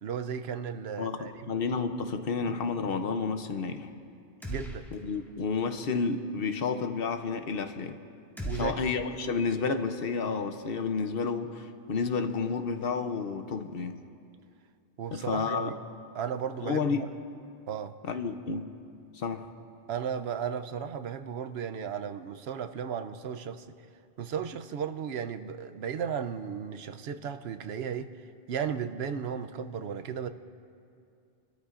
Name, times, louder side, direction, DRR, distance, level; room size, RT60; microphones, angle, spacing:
voice 1, 0.0-1.5 4.5-4.8 8.4-8.8 15.0-15.8 16.1-17.1 17.7-17.9 19.9-23.8 24.2-28.2 28.5-30.3, right 7 dB, 85° right, 9 dB, 0.9 m, -35 dB
voice 2, 1.0-3.9 4.9-8.0 8.6-14.0 15.1-15.8 16.6-17.1 18.0-18.7 19.1-19.5, left 5 dB, 65° left, 8 dB, 1.0 m, -31 dB
sound 1, 4.4-5.3 5.6-5.7 8.4-9.7, equal, ahead, 1.7 m, -39 dB
29.0 x 13.0 x 2.5 m, 2.4 s
omnidirectional pair, 1.0 m